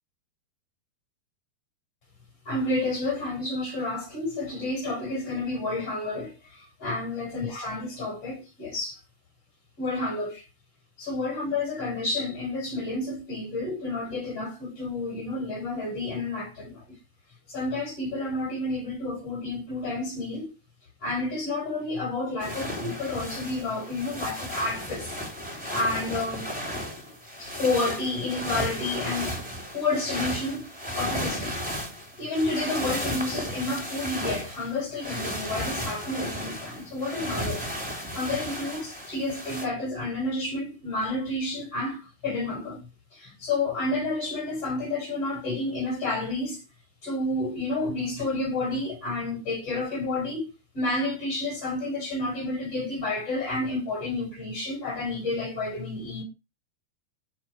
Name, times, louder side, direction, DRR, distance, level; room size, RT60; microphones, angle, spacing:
voice 1, 2.5-6.3 6.8-9.0 9.8-10.4 11.0-16.7 17.5-20.5 21.0-25.1 25.7-26.5 27.4-29.4 29.7-30.7 30.9-31.6 32.2-37.6 38.1-42.8 43.2-46.6 47.0-50.5 50.7-56.2, left 2 dB, 35° left, 6.7 m, -30 dB
sound 1, 22.4-39.7, equal, ahead, 3.9 m, -34 dB
13.0 x 7.7 x 5.0 m
omnidirectional pair, 4.8 m